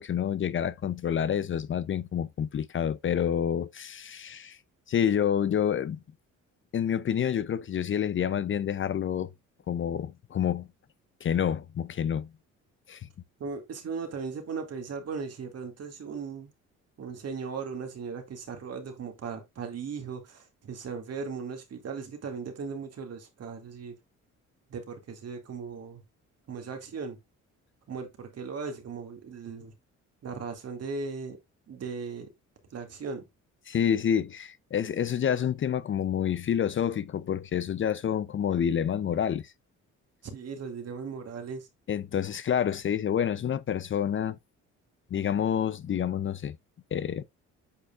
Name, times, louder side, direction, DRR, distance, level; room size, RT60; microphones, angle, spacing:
voice 1, 0.0-4.6 4.9-6.0 6.7-9.3 9.7-10.7 11.2-12.3 12.9-13.1 33.7-39.5 41.9-44.4 45.1-46.6 46.9-47.2, left 9 dB, 40° left, 0.5 m, -28 dB
voice 2, 13.4-16.5 17.0-24.0 24.7-26.0 26.5-27.2 27.9-29.7 30.2-31.4 31.7-32.3 32.7-33.3 40.2-41.7, right 5 dB, 55° right, 2.2 m, -37 dB
8.2 x 5.2 x 2.4 m
cardioid pair, 90°, 30 cm